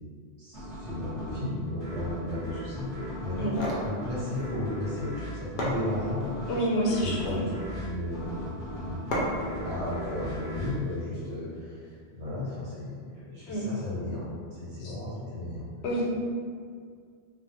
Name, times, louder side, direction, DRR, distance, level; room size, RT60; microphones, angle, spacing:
voice 1, 0.4-3.5 3.8-6.5 6.9-9.0 9.6-15.6 15.9-16.0, left 1 dB, 85° right, -8 dB, 1.2 m, -35 dB
sound 1, 0.5-11.8, equal, 25° right, 0.8 m, -38 dB
sound 2, 3.3-3.9 5.1-5.2 5.6-6.4 7.0-7.5 9.1-9.5, equal, 60° left, 0.6 m, -32 dB
voice 2, 6.5-7.4 13.5-13.6 14.8-14.9 15.8-16.0, equal, 85° left, -3 dB, 0.9 m, -28 dB
2.4 x 2.1 x 2.8 m, 2.1 s
omnidirectional pair, 1.1 m